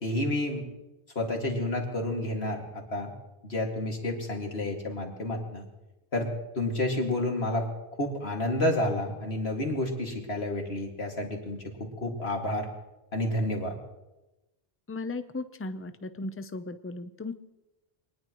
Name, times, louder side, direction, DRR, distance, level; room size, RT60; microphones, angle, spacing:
voice 1, 0.0-0.6 1.2-3.1 3.4-5.7 6.1-6.3 6.6-7.7 8.0-12.7 13.1-13.8, left 1 dB, 80° left, 1 dB, 2.6 m, -30 dB
voice 2, 14.9-17.3, left 2 dB, 15° left, 10 dB, 0.6 m, -36 dB
24.5 x 19.5 x 3.1 m, 1.0 s
omnidirectional pair, 1.0 m